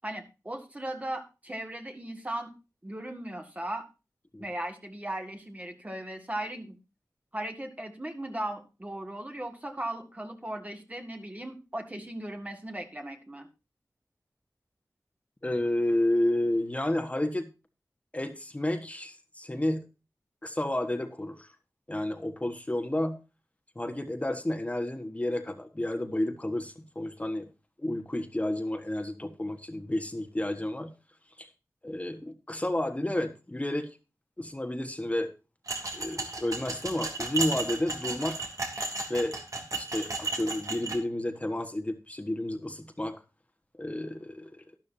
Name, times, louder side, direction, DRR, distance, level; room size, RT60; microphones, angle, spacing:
voice 1, 0.0-2.5 2.8-3.9 4.4-6.8 7.3-13.5, right 1 dB, 25° right, 4 dB, 2.0 m, -37 dB
voice 2, 15.4-17.5 18.1-19.8 20.4-21.5 21.9-23.2 23.7-27.5 27.8-30.9 31.4-31.5 31.8-34.0 34.4-35.3 35.9-38.4 39.1-39.4 39.7-43.1 43.8-44.6, left 1 dB, 20° left, 6 dB, 1.3 m, -31 dB
sound 1, 35.7-41.0, right 3 dB, 65° right, 3.0 m, -34 dB
12.5 x 12.0 x 2.7 m, 0.30 s
wide cardioid pair, 75°, 6 cm